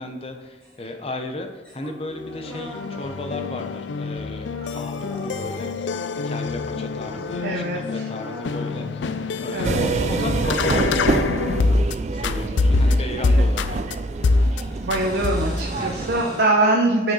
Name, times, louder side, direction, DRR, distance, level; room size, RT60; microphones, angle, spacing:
voice 1, 0.0-9.1 9.4-14.0 15.8-16.3, left 2 dB, 30° left, 5 dB, 0.7 m, -35 dB
sound 1, 0.6-0.8 1.6-3.9 4.5-5.8 6.9-7.5 7.8-7.9 8.2-10.1 10.8-11.9 12.4-13.0 13.2-16.4, equal, 5° left, 1.9 m, -40 dB
sound 2, 2.2-11.9 12.2-13.9 14.2-14.6 14.9-15.7, left 3 dB, 85° left, 0.4 m, -25 dB
voice 2, 7.4-8.0 9.4-9.8 13.2-13.5 14.8-17.1, right 2 dB, 65° right, -1 dB, 0.8 m, -23 dB
sound 3, 9.6-16.2, right 3 dB, 40° right, 0.3 m, -27 dB
6.0 x 5.9 x 4.1 m, 1.2 s
head